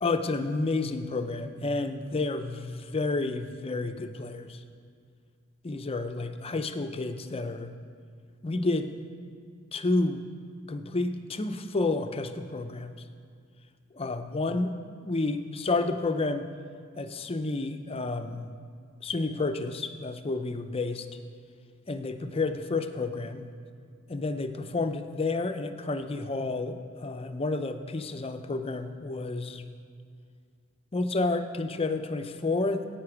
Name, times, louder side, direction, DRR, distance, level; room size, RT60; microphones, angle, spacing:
voice 1, 0.0-4.6 5.6-7.7 8.4-8.9 9.7-10.2 10.7-12.9 13.9-14.7 15.0-16.5 17.0-18.5 19.0-21.1 21.9-23.5 24.1-29.7 30.9-32.8, left 3 dB, 30° left, 8 dB, 0.5 m, -30 dB
9.8 x 8.7 x 5.9 m, 2.2 s
head